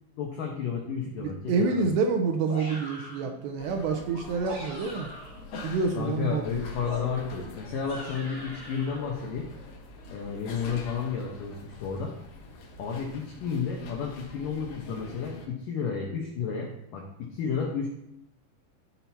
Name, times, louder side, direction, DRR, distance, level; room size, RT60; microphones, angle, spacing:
voice 1, 0.2-1.8 6.0-9.5 10.1-12.1 12.8-17.9, left 6 dB, 85° left, -1 dB, 1.9 m, -32 dB
voice 2, 1.2-5.1 5.6-6.5, right 4 dB, 85° right, 4 dB, 2.7 m, -27 dB
sound 1, 2.4-3.3 4.2-5.4 6.8-9.0, right 1 dB, 10° right, 1.3 m, -42 dB
sound 2, 3.6-15.5, left 4 dB, 70° left, 2.4 m, -44 dB
12.5 x 5.8 x 2.8 m, 0.83 s
omnidirectional pair, 5.4 m